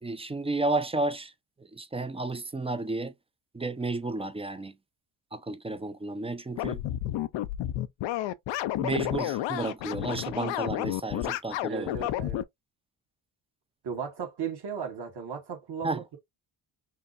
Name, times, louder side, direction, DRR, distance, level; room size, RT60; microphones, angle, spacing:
voice 1, 0.0-1.3 1.7-3.1 3.5-4.7 5.3-6.8 8.8-12.1 15.8-16.0, right 2 dB, 15° right, 0.5 m, -32 dB
sound 1, 6.6-12.4, left 13 dB, 70° left, 0.5 m, -31 dB
voice 2, 11.7-12.4 13.8-16.2, right 6 dB, 55° right, 1.7 m, -36 dB
5.7 x 2.1 x 2.5 m
supercardioid pair, 70°, 47 cm